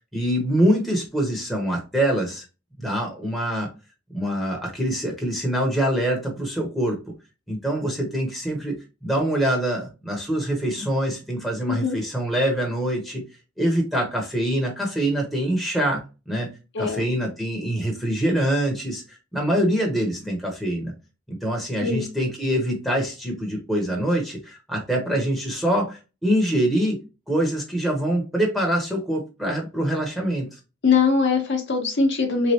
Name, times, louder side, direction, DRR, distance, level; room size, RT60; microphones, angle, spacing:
voice 1, 0.1-2.4 2.8-3.7 4.1-7.0 7.5-13.2 13.6-16.5 16.8-20.9 21.3-27.0 27.3-30.5, right 1 dB, ahead, -1 dB, 0.8 m, -24 dB
voice 2, 11.7-12.0 16.7-17.0 21.8-22.1 30.8-32.5, left 5 dB, 60° left, 2 dB, 0.8 m, -21 dB
3.7 x 3.1 x 2.7 m, 0.30 s
head